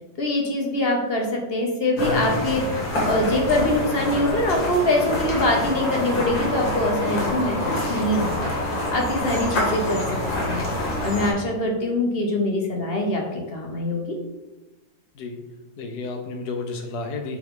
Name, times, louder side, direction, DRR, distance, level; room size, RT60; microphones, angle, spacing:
voice 1, 0.2-2.6 3.0-8.5 8.9-10.7 11.0-14.0, left 1 dB, 40° left, 1 dB, 0.9 m, -24 dB
sound 1, 2.0-11.3, left 1 dB, 80° left, 2.4 m, -26 dB
voice 2, 15.1-17.4, left 3 dB, 65° left, 5 dB, 1.3 m, -32 dB
8.3 x 3.6 x 3.7 m, 1.1 s
omnidirectional pair, 2.0 m